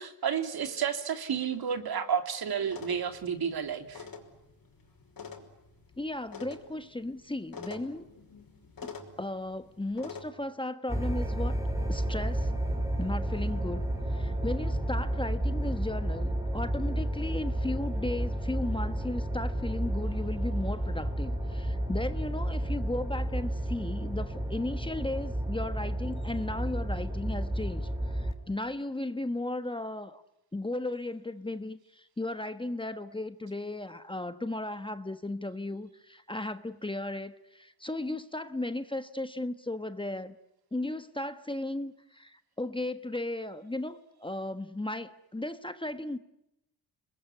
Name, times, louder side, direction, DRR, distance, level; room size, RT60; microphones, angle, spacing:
voice 1, 0.0-4.1, right 7 dB, 60° right, 7 dB, 3.2 m, -31 dB
sound 1, 2.7-10.3, left 5 dB, 55° left, 5.6 m, -47 dB
voice 2, 6.0-8.1 8.8-11.6 11.9-12.5 13.0-13.8 14.1-30.2 30.5-40.4 40.7-46.2, left 2 dB, 10° left, 10 dB, 1.2 m, -35 dB
sound 2, 10.9-28.3, right 1 dB, 10° right, 4.9 m, -31 dB
28.5 x 21.5 x 9.7 m, 0.86 s
cardioid pair, 85°, 42 cm